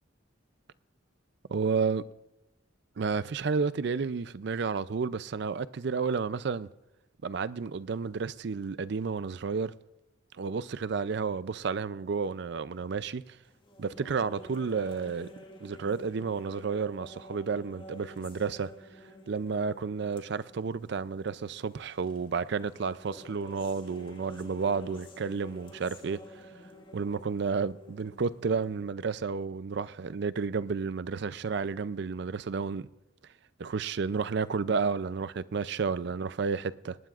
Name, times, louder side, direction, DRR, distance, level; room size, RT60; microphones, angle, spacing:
voice 1, 1.5-2.0 3.0-6.7 7.2-9.7 10.4-13.2 13.8-15.3 15.6-18.7 19.3-26.2 26.9-32.9 33.6-37.0, right 5 dB, 55° right, 0.4 m, -31 dB
sound 1, 13.5-28.9, equal, 25° left, 1.6 m, -50 dB
19.0 x 18.5 x 2.4 m
head